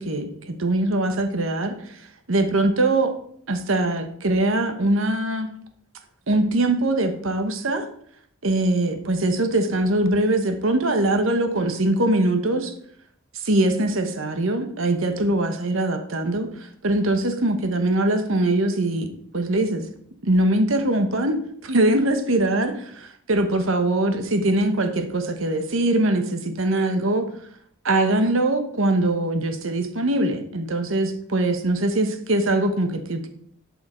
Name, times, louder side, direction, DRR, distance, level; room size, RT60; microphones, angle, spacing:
voice 1, 0.0-2.0 2.3-3.1 3.5-5.5 6.3-7.9 8.4-12.7 13.3-19.1 19.3-19.8 20.2-27.2 27.8-33.3, right 1 dB, 75° right, 7 dB, 1.2 m, -22 dB
11.5 x 5.7 x 4.4 m, 0.64 s
head